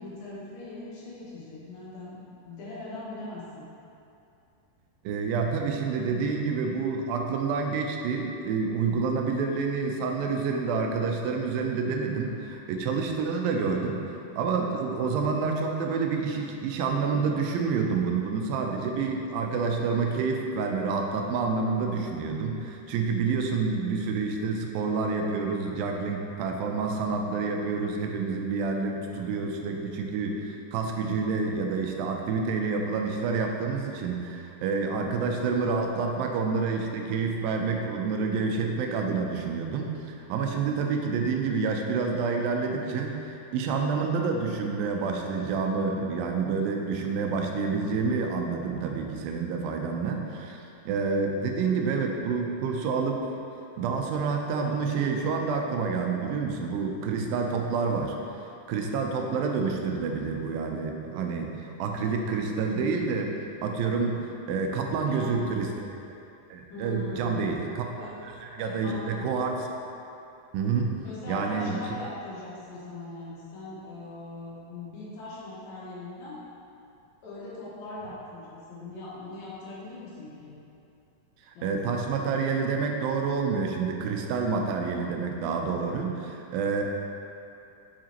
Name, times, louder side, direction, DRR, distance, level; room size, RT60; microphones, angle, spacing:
voice 1, 0.0-2.2 2.4-3.6 35.1-35.3 64.5-64.6 65.0-65.3 66.7-67.5 68.0-68.1 68.6-69.3 71.0-76.4 77.2-80.5 81.5-82.3, left 2 dB, 85° left, -8 dB, 3.3 m, -40 dB
voice 2, 5.0-14.0 14.4-39.9 40.3-53.2 53.8-58.1 58.7-63.3 63.6-64.2 64.5-65.9 66.5-69.5 70.5-70.9 71.3-71.8 81.5-86.8, right 4 dB, 85° right, 2 dB, 2.4 m, -28 dB
7.4 x 6.6 x 3.0 m, 2.7 s
omnidirectional pair, 4.0 m